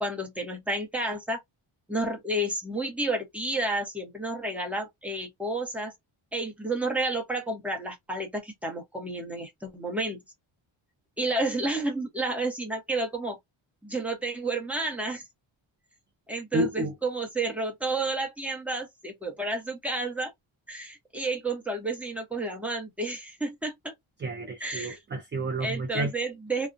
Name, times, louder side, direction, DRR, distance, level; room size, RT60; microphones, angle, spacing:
voice 1, 0.0-1.4 1.9-5.9 6.3-10.2 11.2-13.4 13.8-15.2 16.3-20.3 20.7-23.9 24.6-25.0 25.6-26.7, right 2 dB, 5° right, 0.7 m, -31 dB
voice 2, 16.5-16.9 24.2-26.1, right 1 dB, 25° right, 0.3 m, -30 dB
2.4 x 2.1 x 2.5 m
wide cardioid pair, 175°, 50 cm